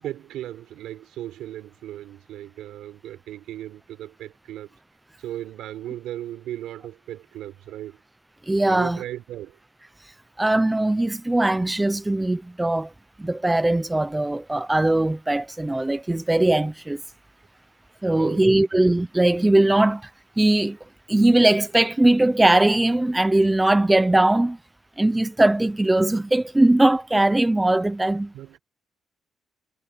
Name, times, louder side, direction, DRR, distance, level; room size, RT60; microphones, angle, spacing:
voice 1, 0.0-4.8 5.2-8.0 8.7-9.6 18.1-18.7 28.3-28.6, right 13 dB, 85° right, 6.0 m, -37 dB
voice 2, 8.5-9.0 10.4-12.9 13.2-17.0 18.0-20.1 20.4-20.8 21.1-24.6 25.0-28.3, right 1 dB, 10° right, 0.8 m, -20 dB
cardioid pair, 90°, 0 cm